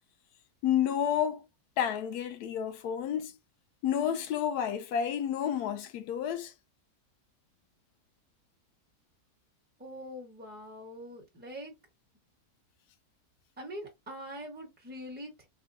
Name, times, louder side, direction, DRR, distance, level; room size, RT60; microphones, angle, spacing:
voice 1, 0.6-1.5 1.8-3.4 3.8-6.5, left 9 dB, 85° left, 1.1 m, -30 dB
voice 2, 9.8-11.7 13.6-15.5, equal, 5° right, 1.1 m, -43 dB
3.7 x 2.2 x 2.6 m
omnidirectional pair, 1.6 m